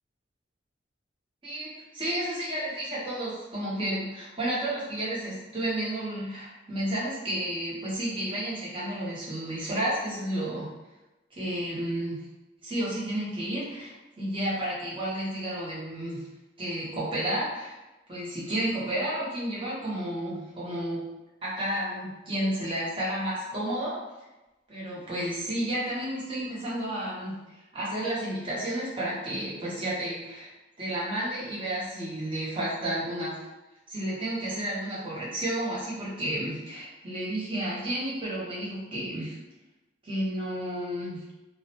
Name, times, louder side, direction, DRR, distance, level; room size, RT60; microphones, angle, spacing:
voice 1, 1.4-10.7 11.3-12.2 12.6-16.2 16.6-17.8 18.1-21.0 21.4-23.9 24.7-30.5 30.8-33.4 33.9-39.4 40.0-41.2, right 1 dB, 25° right, -7 dB, 0.8 m, -31 dB
2.4 x 2.0 x 2.8 m, 1.0 s
head